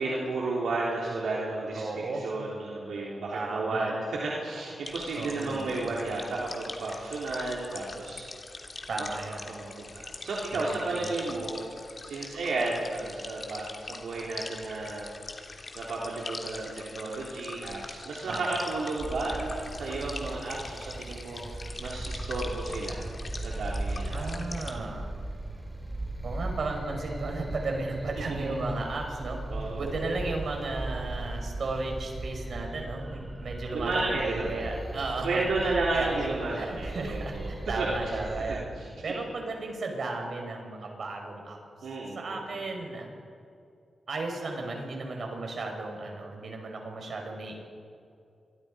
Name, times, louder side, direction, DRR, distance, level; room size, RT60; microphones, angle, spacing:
voice 1, 0.0-8.3 8.6-8.7 9.5-15.1 15.8-23.1 23.3-24.3 28.4-28.6 29.5-29.8 33.7-34.7 35.2-37.9 38.5-38.9 41.8-42.4, right 2 dB, 85° right, -4 dB, 3.7 m, -32 dB
voice 2, 1.7-2.2 3.3-3.9 5.1-5.8 8.9-9.5 10.5-11.1 18.3-18.6 24.1-25.1 26.2-29.4 29.8-36.3 36.6-38.6 39.0-41.6 42.1-43.1 44.1-47.6, right 3 dB, 70° right, 2 dB, 5.5 m, -34 dB
sound 1, 4.8-24.7, left 3 dB, 50° left, 2.9 m, -43 dB
sound 2, 19.0-38.6, right 2 dB, 30° right, 5.7 m, -38 dB
27.5 x 23.0 x 5.3 m, 2.5 s
cardioid pair, 55°, 0 cm